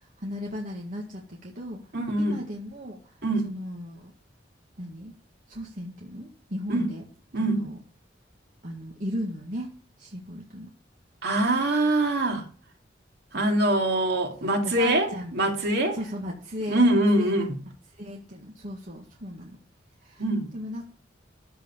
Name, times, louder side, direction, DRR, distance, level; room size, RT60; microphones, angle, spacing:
voice 1, 0.2-1.8 2.2-3.0 3.4-4.1 4.8-5.1 5.5-7.0 7.4-7.8 8.6-9.7 10.0-10.7 13.3-13.4 14.4-15.3 15.9-17.5 18.0-19.6 20.0-20.2 20.5-20.9, equal, 50° right, 1.9 m, -36 dB
voice 2, 1.9-2.4 3.2-3.5 6.7-6.9 7.3-7.7 11.2-12.4 13.3-16.0 16.7-17.6 20.2-20.5, right 1 dB, 65° right, 2.8 m, -24 dB
13.0 x 4.7 x 7.3 m
head